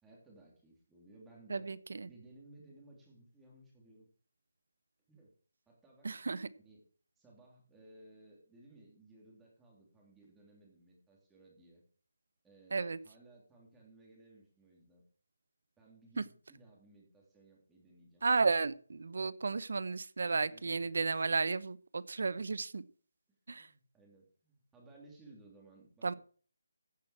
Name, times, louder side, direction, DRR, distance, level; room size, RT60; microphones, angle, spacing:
voice 1, 0.0-1.7 2.1-4.1 5.1-5.3 5.7-6.1 6.5-6.8 7.2-11.8 12.4-15.0 15.8-18.2 20.4-20.8 23.5-26.2, right 2 dB, 5° right, -3 dB, 3.1 m, -59 dB
voice 2, 1.5-2.1 6.0-6.5 12.7-13.0 18.2-22.8 23.5-23.7 26.0-26.1, right 4 dB, 60° right, 16 dB, 0.9 m, -33 dB
15.5 x 6.2 x 4.8 m, 0.42 s
hypercardioid pair, 170°, 0 cm